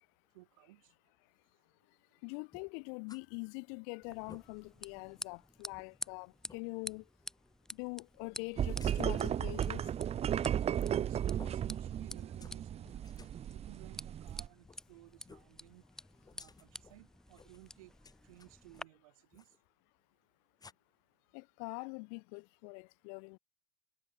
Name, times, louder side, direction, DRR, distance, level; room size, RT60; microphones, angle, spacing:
voice 1, 0.3-0.9 10.8-13.1 13.5-15.8 16.3-17.9 18.2-19.6, right 19 dB, 75° right, 4.2 m, -58 dB
voice 2, 2.2-7.0 7.7-9.8 21.3-23.4, left 40 dB or more, 70° left, 3.0 m, -44 dB
sound 1, 2.5-3.2 3.6-3.7 4.1-4.4 5.0-5.1 5.7-5.8 6.4-6.6 8.8-9.3 10.7-11.0 11.4-11.6 12.2-12.6 12.8-13.4 14.6-14.8 15.2-15.5 16.2-17.0 17.3-17.7 18.0-18.9 19.3-19.6 20.6-20.7, left 4 dB, 20° left, 2.8 m, -57 dB
sound 2, 4.0-18.8, left 1 dB, 5° left, 3.3 m, -50 dB
sound 3, 8.6-14.5, right 10 dB, 35° right, 0.8 m, -35 dB
hypercardioid pair, 80°, 18 cm